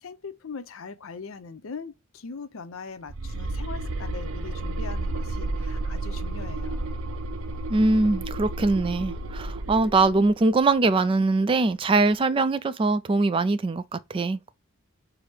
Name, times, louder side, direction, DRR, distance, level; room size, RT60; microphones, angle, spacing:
voice 1, 0.0-6.9, left 5 dB, 80° left, 0.6 m, -40 dB
sound 1, 3.1-10.3, right 2 dB, 75° right, 0.6 m, -32 dB
voice 2, 7.7-14.5, right 3 dB, 25° right, 0.3 m, -22 dB
4.9 x 2.0 x 4.4 m
head